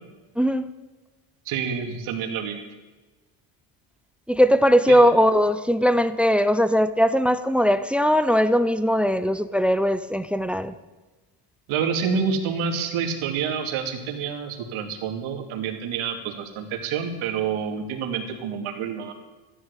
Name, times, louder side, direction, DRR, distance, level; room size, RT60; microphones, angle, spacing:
voice 1, 0.4-0.7 4.3-10.7, equal, 5° right, 13 dB, 0.5 m, -20 dB
voice 2, 1.5-2.6 4.9-5.0 11.7-19.1, right 6 dB, 75° right, 4 dB, 2.7 m, -28 dB
14.0 x 11.0 x 8.3 m, 1.2 s
cardioid pair, 130°, 49 cm